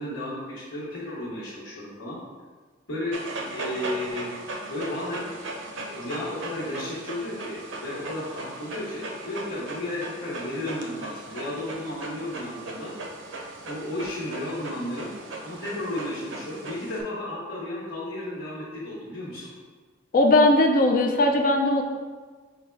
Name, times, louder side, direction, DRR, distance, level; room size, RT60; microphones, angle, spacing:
voice 1, 0.0-2.2 2.9-4.3 4.7-5.2 5.8-12.9 13.6-15.1 15.4-19.5, left 1 dB, 75° left, -10 dB, 1.2 m, -33 dB
Dog, 3.1-17.0, right 2 dB, 65° right, 0.5 m, -38 dB
voice 2, 20.1-21.8, left 2 dB, 45° left, 3 dB, 0.3 m, -19 dB
5.6 x 2.1 x 3.3 m, 1.4 s
head